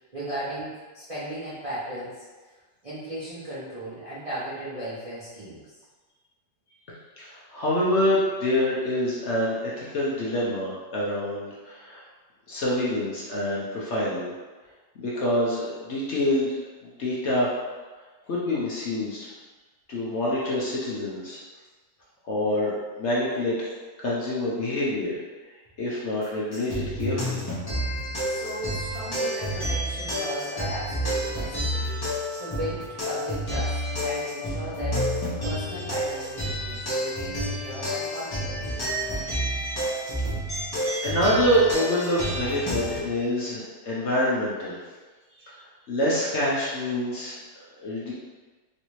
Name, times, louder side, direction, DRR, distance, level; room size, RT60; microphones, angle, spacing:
voice 1, 0.1-2.6 2.8-5.8 28.2-35.2 35.4-38.8, right 1 dB, 70° right, -11 dB, 0.3 m, -36 dB
voice 2, 7.2-12.0 12.5-14.3 15.0-16.5 16.8-17.5 18.3-19.2 19.9-21.4 22.2-23.6 24.0-25.2 25.8-27.4 40.0-40.1 41.0-44.8 45.4-45.6 45.9-47.4 47.8-48.1, left 1 dB, 65° left, -6 dB, 0.7 m, -26 dB
sound 1, 26.5-43.0, equal, 35° left, 0.3 m, -29 dB
3.1 x 2.7 x 3.0 m, 1.3 s
omnidirectional pair, 1.9 m